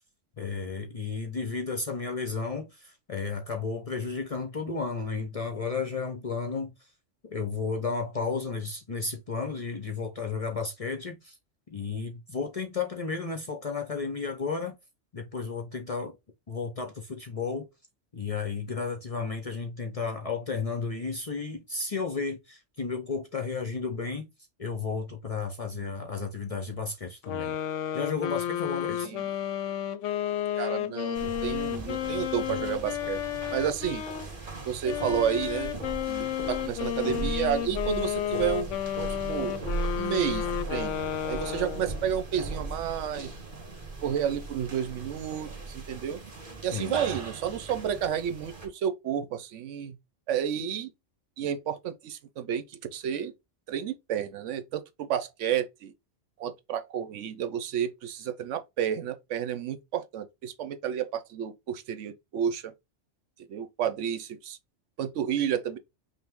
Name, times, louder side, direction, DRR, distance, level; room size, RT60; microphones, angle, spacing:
voice 1, 0.4-6.7 7.2-11.4 11.7-14.7 15.1-16.2 16.5-17.7 18.1-24.3 24.6-27.6 27.9-29.1 46.7-47.0, left 4 dB, 40° left, 0.5 m, -33 dB
sound 1, 27.2-34.3 34.8-42.0, left 11 dB, 85° left, 0.9 m, -32 dB
voice 2, 30.6-33.2 33.5-34.0 34.6-35.7 36.1-39.6 40.0-43.3 44.0-46.2 46.6-49.9 50.3-50.9 51.4-53.3 53.7-55.9 56.4-62.7 63.5-64.6 65.0-65.8, right 9 dB, 80° right, 1.0 m, -31 dB
sound 2, 31.1-48.7, right 3 dB, 45° right, 1.5 m, -38 dB
5.6 x 2.1 x 3.5 m
omnidirectional pair, 1.3 m